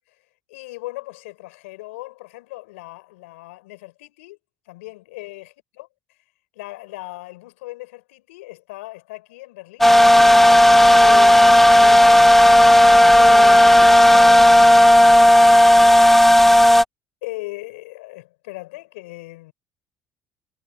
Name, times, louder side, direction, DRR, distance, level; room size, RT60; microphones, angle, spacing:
voice 1, 0.5-4.4 4.7-5.9 6.5-9.9 10.8-15.4 17.2-19.5, left 21 dB, 90° left, 5.7 m, -38 dB
sound 1, 9.8-16.8, left 1 dB, 5° left, 0.4 m, -11 dB
supercardioid pair, 70°, 7 cm